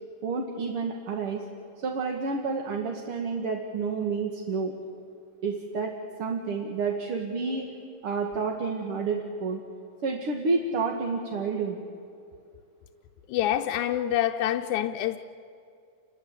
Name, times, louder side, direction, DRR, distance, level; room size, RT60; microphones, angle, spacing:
voice 1, 0.2-1.4 1.8-4.7 5.4-5.9 6.2-7.7 8.0-9.6 10.0-11.8, right 4 dB, 50° right, 1 dB, 2.5 m, -29 dB
voice 2, 13.3-15.2, left 12 dB, 80° left, 3 dB, 2.2 m, -26 dB
29.0 x 22.0 x 8.3 m, 2.4 s
omnidirectional pair, 3.5 m